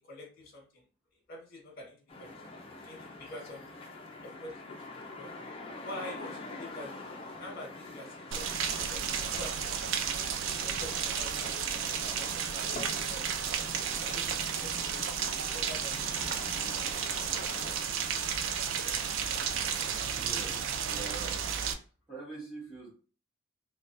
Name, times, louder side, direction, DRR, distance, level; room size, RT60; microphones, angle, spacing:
voice 1, 0.1-0.8 1.3-3.8 4.2-5.3 5.8-6.9 7.4-10.1 10.6-13.2 14.0-15.0 15.5-16.2, left 1 dB, 50° left, -1 dB, 1.5 m, -47 dB
sound 1, 2.1-17.7, left 2 dB, 25° left, 0.5 m, -46 dB
Rain, 8.3-21.7, right 7 dB, 65° right, 0.4 m, -33 dB
voice 2, 20.2-21.6 22.1-22.9, right 4 dB, 5° right, -10 dB, 1.0 m, -44 dB
4.1 x 2.3 x 2.5 m, 0.38 s
head